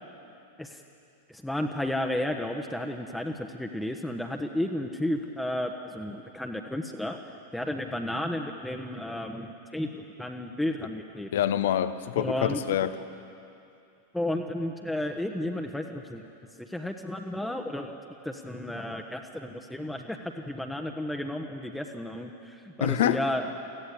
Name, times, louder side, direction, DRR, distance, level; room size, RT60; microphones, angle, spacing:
voice 1, 1.3-7.2 7.5-11.3 12.2-12.6 14.1-16.3 16.6-18.0 18.2-23.4, left 1 dB, 5° left, 3 dB, 1.1 m, -32 dB
voice 2, 11.3-12.9 22.8-23.2, left 11 dB, 60° left, 12 dB, 0.9 m, -26 dB
24.0 x 16.0 x 8.2 m, 2.6 s
figure-of-eight pair, 90°, 0 cm